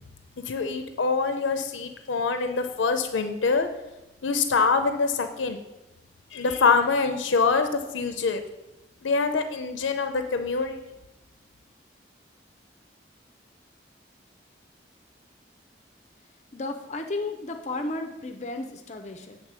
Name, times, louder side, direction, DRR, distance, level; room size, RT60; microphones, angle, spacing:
voice 1, 0.5-3.7 4.2-5.6 6.3-8.4 9.0-10.8, left 4 dB, 90° left, 8 dB, 0.5 m, -25 dB
voice 2, 16.5-19.4, left 2 dB, 35° left, 5 dB, 0.5 m, -33 dB
8.1 x 3.7 x 6.1 m, 0.98 s
head